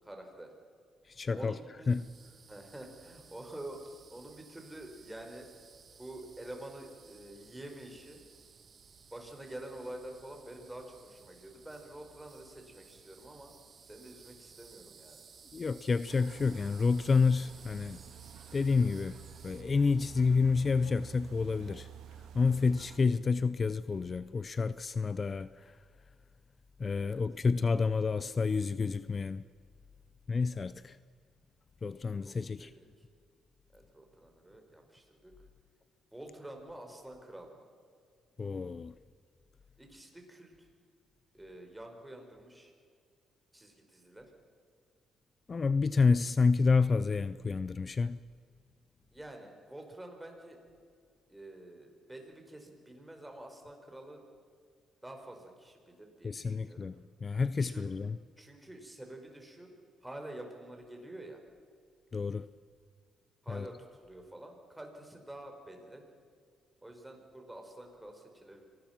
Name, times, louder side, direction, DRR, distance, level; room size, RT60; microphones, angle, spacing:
voice 1, 0.0-0.5 1.3-1.9 2.5-5.5 6.0-8.2 9.1-13.5 13.8-15.2 27.0-27.2 32.2-32.9 33.7-35.3 36.1-37.6 39.8-40.7 41.3-42.7 43.5-44.3 49.1-50.6 51.3-54.2 55.0-56.9 57.6-58.1 58.4-59.7 60.0-61.4 63.4-66.0 66.8-68.7, right 1 dB, 10° right, 5.1 m, -48 dB
voice 2, 1.1-1.6 1.9-2.0 15.5-18.0 18.5-19.2 19.4-21.9 22.3-25.8 26.8-29.4 30.3-31.0 31.8-32.7 38.4-38.9 45.5-48.2 56.2-56.9 57.2-58.2 62.1-62.5 63.5-63.7, left 4 dB, 35° left, 0.5 m, -29 dB
sound 1, 1.9-19.6, right 6 dB, 45° right, 1.6 m, -58 dB
sound 2, 16.1-23.0, right 8 dB, 80° right, 2.2 m, -51 dB
25.5 x 19.5 x 6.0 m
cardioid pair, 90°, 0 cm